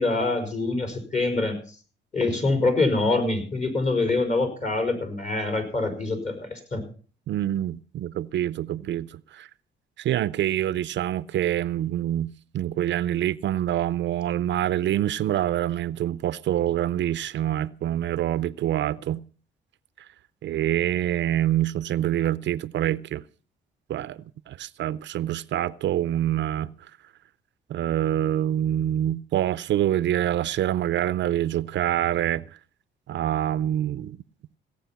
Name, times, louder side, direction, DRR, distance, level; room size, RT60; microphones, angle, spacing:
voice 1, 0.0-1.6 2.1-6.8, left 3 dB, 35° left, 4.9 m, -25 dB
voice 2, 7.3-9.5 10.0-19.2 20.4-23.2 23.9-24.2 24.5-26.7 27.7-32.4 33.1-34.2, right 12 dB, 65° right, 0.6 m, -26 dB
17.0 x 8.7 x 5.8 m
cardioid pair, 90°, 20 cm